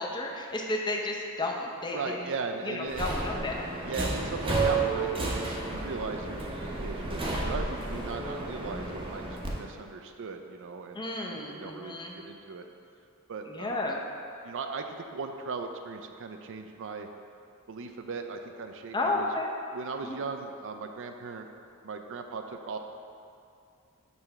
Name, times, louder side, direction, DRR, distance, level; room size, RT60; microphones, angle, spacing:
voice 1, 0.0-2.3 2.6-3.8 10.9-12.2 13.5-14.0 18.9-19.5 20.0-20.2, left 2 dB, 20° left, -1 dB, 0.6 m, -32 dB
voice 2, 1.9-3.1 3.8-12.7 13.3-13.8 14.4-17.1 17.7-19.3 19.7-21.5 21.8-22.8, right 4 dB, 60° right, 6 dB, 0.5 m, -38 dB
Subway metro underground, 2.9-9.5, right 3 dB, 25° right, 0.8 m, -31 dB
6.8 x 3.3 x 5.8 m, 2.5 s
head